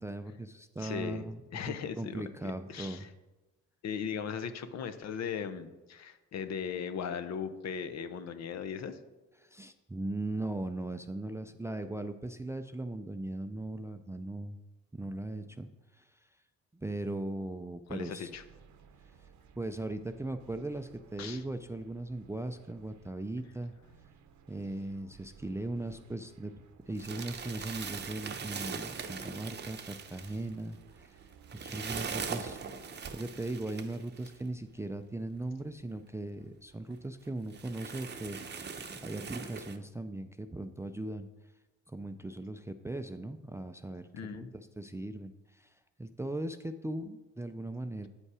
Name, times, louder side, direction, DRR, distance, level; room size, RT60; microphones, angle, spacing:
voice 1, 0.0-3.1 9.4-14.6 14.9-15.7 15.9-16.3 16.7-18.3 19.6-23.7 24.5-31.2 31.5-32.9 33.1-38.7 39.0-41.3 41.9-44.1 44.3-48.1, right 2 dB, 10° right, 9 dB, 0.4 m, -39 dB
voice 2, 0.8-1.2 1.5-2.2 2.7-3.1 3.8-9.0 17.9-18.4 21.2-21.4 44.1-44.5, left 7 dB, 60° left, 11 dB, 0.7 m, -38 dB
sound 1, 18.3-33.0, right 7 dB, 70° right, 0.7 m, -59 dB
sound 2, 26.9-34.4 35.2-35.3 35.6-35.7 36.4-36.5 36.9-37.0 37.5-39.8, right 5 dB, 35° right, 0.7 m, -41 dB
8.5 x 5.4 x 4.8 m, 1.1 s
cardioid pair, 90°, 30 cm